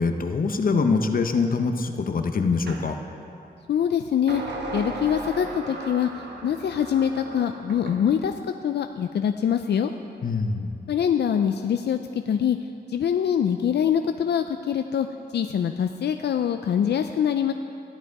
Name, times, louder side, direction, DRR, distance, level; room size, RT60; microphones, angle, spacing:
voice 1, 0.0-3.0 10.2-10.7, left 4 dB, 55° left, 6 dB, 0.8 m, -24 dB
sound 1, 2.7-2.9 4.3-8.0, right 2 dB, 90° right, 1.3 m, -36 dB
voice 2, 3.7-4.4 4.7-6.1 6.4-8.3 8.6-9.9 10.9-12.0 12.3-12.6 12.9-15.1 15.3-17.5, left 8 dB, 85° left, 7 dB, 0.4 m, -24 dB
13.5 x 11.0 x 4.7 m, 2.6 s
wide cardioid pair, 125°, 17 cm